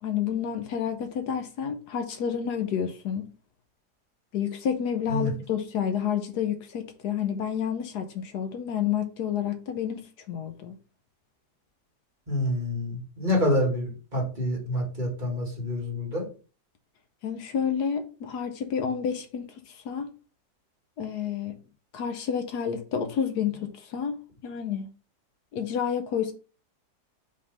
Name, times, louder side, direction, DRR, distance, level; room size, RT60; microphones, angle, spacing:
voice 1, 0.0-3.3 4.3-10.7 17.2-20.1 21.0-21.5 21.9-24.9 25.5-26.3, left 8 dB, 80° left, 1.4 m, -30 dB
voice 2, 12.3-16.3, left 1 dB, 30° right, 2.5 m, -27 dB
5.1 x 3.7 x 5.3 m
omnidirectional pair, 1.7 m